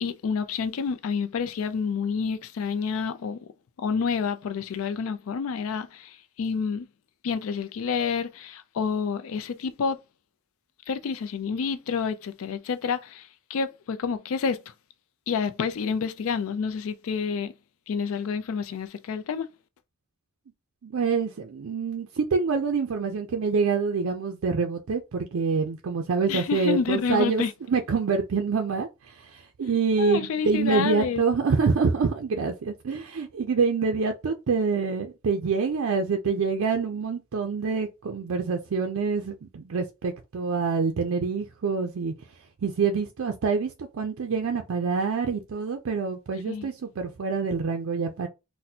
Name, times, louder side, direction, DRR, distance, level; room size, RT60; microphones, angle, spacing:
voice 1, 0.0-3.5 3.8-6.9 7.2-10.0 10.9-14.6 15.3-17.5 17.9-19.5 26.3-27.5 30.0-31.2 46.5-46.7, left 6 dB, 75° left, 0.4 m, -29 dB
voice 2, 20.8-42.1 42.6-48.3, right 5 dB, 75° right, 0.4 m, -26 dB
4.1 x 2.1 x 2.7 m
head